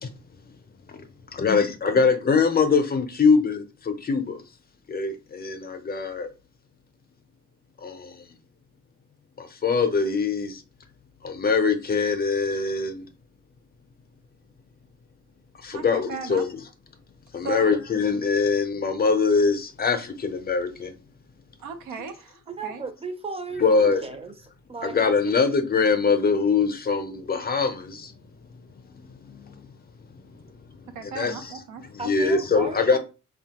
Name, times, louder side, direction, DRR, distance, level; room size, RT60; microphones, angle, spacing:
voice 1, 1.4-4.4 4.9-6.3 7.8-8.3 9.4-10.6 11.2-13.0 15.6-16.6 17.3-21.0 23.6-24.0 24.8-28.1 28.9-29.7 30.8-31.5 31.9-33.0, left 5 dB, 30° left, 0.5 m, -23 dB
voice 2, 15.7-16.5 17.4-17.8 21.6-22.8 30.9-31.9, right 5 dB, 90° right, 0.6 m, -37 dB
voice 3, 22.5-24.3 24.7-25.0 25.2-25.3 32.0-33.0, right 3 dB, 20° right, 0.5 m, -35 dB
2.9 x 2.2 x 2.8 m
cardioid pair, 90°, 30 cm